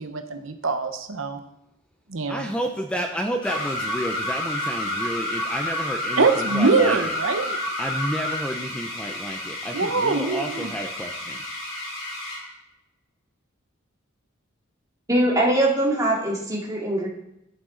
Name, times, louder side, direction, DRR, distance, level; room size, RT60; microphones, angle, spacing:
voice 1, 0.0-1.4 2.1-2.5 6.2-7.6 9.7-10.7, right 4 dB, 75° right, 6 dB, 1.0 m, -23 dB
voice 2, 2.3-7.2 7.8-11.4, equal, 5° left, 3 dB, 0.6 m, -30 dB
sound 1, 3.4-12.5, left 1 dB, 80° left, 3.9 m, -30 dB
voice 3, 15.1-17.1, right 1 dB, 15° right, -3 dB, 2.3 m, -22 dB
11.5 x 9.0 x 3.9 m, 0.82 s
head